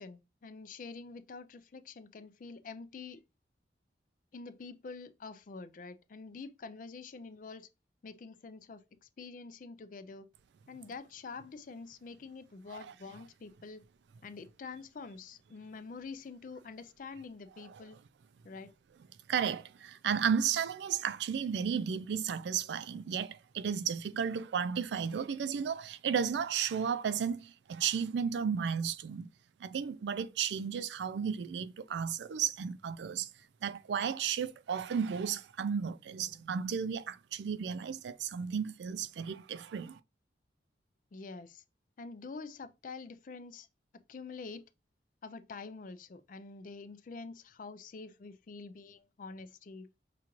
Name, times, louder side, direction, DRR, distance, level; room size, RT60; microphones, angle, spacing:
voice 1, 0.0-3.2 4.3-7.7 8.0-10.3 10.7-13.8 14.2-18.0 18.4-18.7 41.1-41.6 42.0-43.7 44.1-44.6 45.2-49.9, left 4 dB, 45° left, 0.4 m, -46 dB
voice 2, 19.3-29.3 29.6-33.3 33.6-40.0, right 7 dB, 70° right, 0.3 m, -33 dB
5.7 x 2.5 x 2.9 m
head